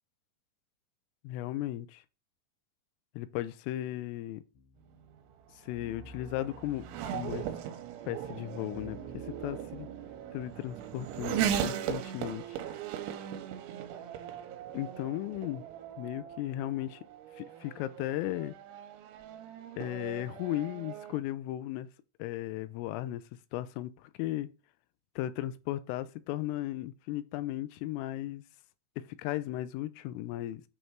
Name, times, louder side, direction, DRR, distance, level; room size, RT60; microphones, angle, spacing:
voice 1, 1.2-2.0 3.2-4.4 5.6-6.8 7.1-7.5 8.1-9.9 10.3-12.4 14.7-15.6 16.0-17.0 17.4-18.6 19.8-21.9 22.2-23.2 23.5-24.5 25.2-28.4 29.2-30.6, left 14 dB, 85° left, 3.2 m, -36 dB
sound 1, 4.5-10.8, left 1 dB, 70° left, 3.0 m, -54 dB
Race car auto racing / Accelerating revving vroom, 5.0-21.2, right 10 dB, 80° right, 3.0 m, -38 dB
8.8 x 3.4 x 4.5 m
omnidirectional pair, 5.7 m